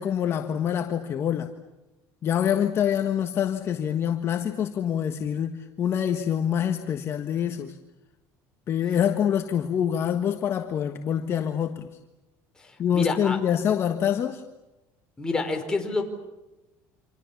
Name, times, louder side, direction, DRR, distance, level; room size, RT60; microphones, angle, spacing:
voice 1, 0.0-1.5 2.2-7.8 8.7-11.9 12.8-14.4, left 9 dB, 40° left, 1.4 m, -25 dB
voice 2, 12.6-13.4 15.2-16.0, left 3 dB, 10° left, 4.6 m, -28 dB
29.0 x 26.5 x 7.2 m
cardioid pair, 130°, 7 cm